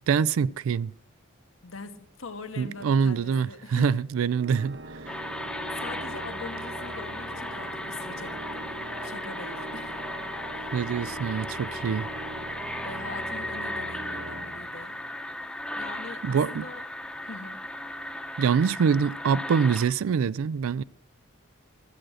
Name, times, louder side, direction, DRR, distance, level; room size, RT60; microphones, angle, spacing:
voice 1, 0.1-0.9 2.6-4.8 10.7-12.1 16.2-16.7 18.4-20.8, right 6 dB, 85° right, 0.3 m, -25 dB
voice 2, 1.6-3.9 5.7-8.7 9.0-10.0 10.6-10.8 12.8-15.0 15.7-16.8 17.2-17.6, left 4 dB, 75° left, 1.2 m, -42 dB
Organ, 4.3-15.3, right 2 dB, 55° right, 0.7 m, -42 dB
sound 1, 5.1-19.9, left 1 dB, 5° left, 0.8 m, -36 dB
13.5 x 7.6 x 6.3 m
head